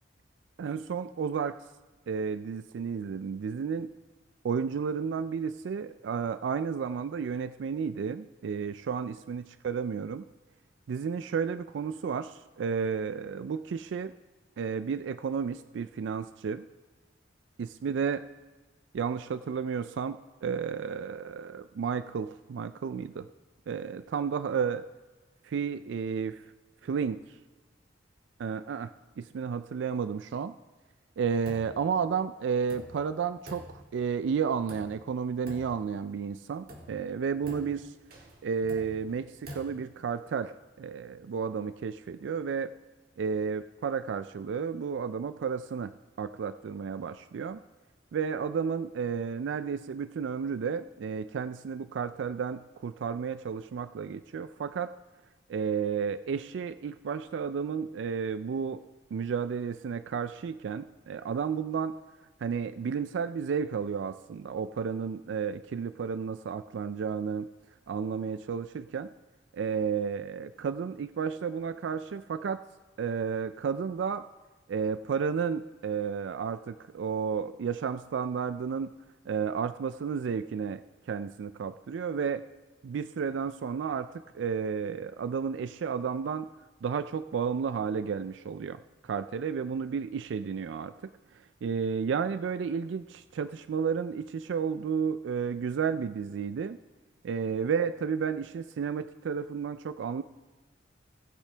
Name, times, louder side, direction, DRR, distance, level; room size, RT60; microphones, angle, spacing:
voice 1, 0.6-1.6 2.1-3.9 4.4-10.3 10.9-14.1 14.6-16.7 17.6-18.2 18.9-23.3 23.7-24.8 25.4-26.4 26.8-27.2 28.4-28.9 29.2-30.5 31.2-37.9 38.4-42.7 43.2-45.9 46.2-47.6 48.1-54.9 55.5-58.8 59.1-62.0 62.4-67.5 67.9-69.1 69.5-72.6 73.0-74.2 74.7-78.9 79.3-80.8 81.1-82.4 82.8-84.1 84.3-86.5 86.8-90.9 91.6-96.8 97.2-100.2, right 6 dB, 70° right, 12 dB, 0.3 m, -32 dB
sound 1, 31.5-32.0 32.2-32.3 32.7-34.2 34.7-35.2 35.5-36.2 36.7-39.6, equal, 50° right, 2.0 m, -47 dB
18.5 x 8.3 x 3.3 m, 1.3 s
head